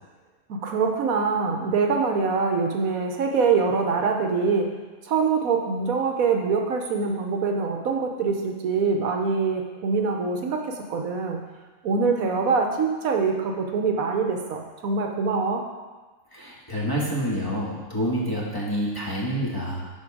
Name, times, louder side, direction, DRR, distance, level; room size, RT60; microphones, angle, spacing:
voice 1, 0.5-4.7 5.0-11.4 11.8-15.6, right 5 dB, 70° right, 3 dB, 1.2 m, -24 dB
voice 2, 16.3-19.9, equal, 15° left, -5 dB, 1.4 m, -28 dB
11.0 x 4.5 x 4.9 m, 1.3 s
omnidirectional pair, 1.6 m